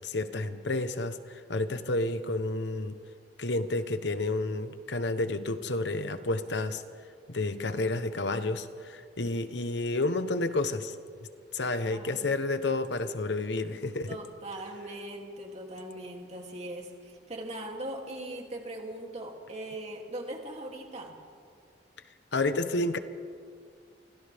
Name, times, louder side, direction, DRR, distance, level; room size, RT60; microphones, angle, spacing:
voice 1, 0.0-3.0 3.4-6.8 7.3-10.9 11.5-14.2 22.3-23.0, left 2 dB, 75° left, 10 dB, 1.1 m, -30 dB
voice 2, 11.8-12.3 14.1-21.2, right 1 dB, 40° right, 0 dB, 2.9 m, -40 dB
30.0 x 24.0 x 3.6 m, 2.2 s
head